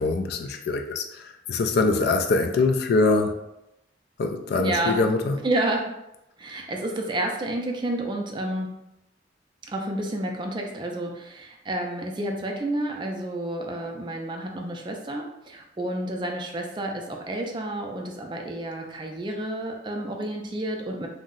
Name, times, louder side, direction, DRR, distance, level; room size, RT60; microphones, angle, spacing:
voice 1, 0.0-3.4 4.2-5.4, left 3 dB, 55° left, 0.3 m, -23 dB
voice 2, 4.6-5.0 5.4-6.0 6.4-8.7 9.7-21.1, right 1 dB, 25° right, 0.3 m, -30 dB
2.6 x 2.0 x 3.7 m
head